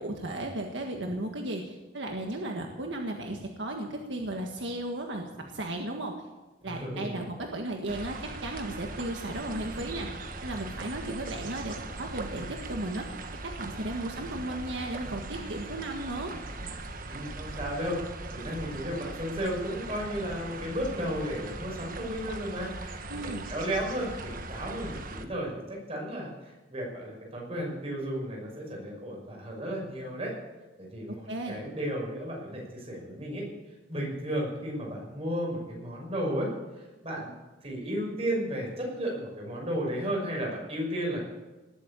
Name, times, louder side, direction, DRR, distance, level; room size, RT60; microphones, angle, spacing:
voice 1, 0.0-5.2 5.5-6.1 6.6-16.3 23.1-23.5 31.3-31.6, right 1 dB, 75° right, 2 dB, 1.7 m, -35 dB
voice 2, 6.6-7.2 17.0-18.0 18.3-23.0 23.2-30.3 30.8-33.5 33.9-36.5 36.8-37.3 37.6-41.3, equal, 35° right, -1 dB, 5.8 m, -34 dB
sound 1, 7.9-25.3, right 2 dB, 50° right, 1.4 m, -40 dB
19.5 x 8.5 x 8.4 m, 1.1 s
head